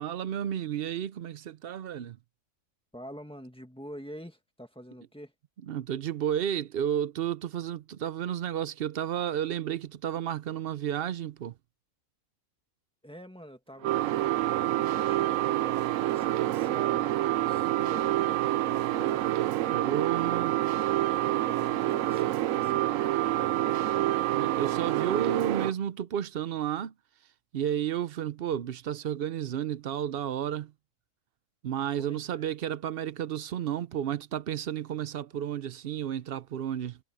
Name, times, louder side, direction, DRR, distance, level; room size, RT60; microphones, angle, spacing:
voice 1, 0.0-2.2 5.7-11.6 19.7-20.6 24.3-26.9 27.5-30.7 31.6-37.0, right 10 dB, 60° right, 0.7 m, -32 dB
voice 2, 2.9-5.3 13.0-19.3 21.2-24.1 32.0-32.5, equal, 5° left, 1.8 m, -46 dB
sound 1, 13.8-25.7, right 14 dB, 80° right, 1.0 m, -27 dB
omnidirectional pair, 1.4 m